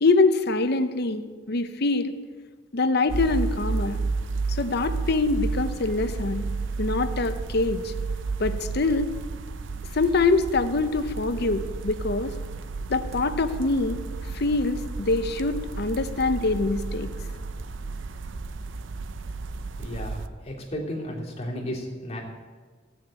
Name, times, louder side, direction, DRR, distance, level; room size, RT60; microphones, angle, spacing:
voice 1, 0.0-2.2 2.7-4.0 4.5-6.5 6.8-7.9 8.4-9.1 9.9-12.3 12.9-14.0 14.3-17.1, left 3 dB, 55° left, 10 dB, 0.8 m, -24 dB
sound 1, 3.1-20.3, right 4 dB, 70° right, 0.6 m, -32 dB
voice 2, 19.8-22.2, equal, 35° left, -3 dB, 2.9 m, -34 dB
15.0 x 6.6 x 8.8 m, 1.5 s
head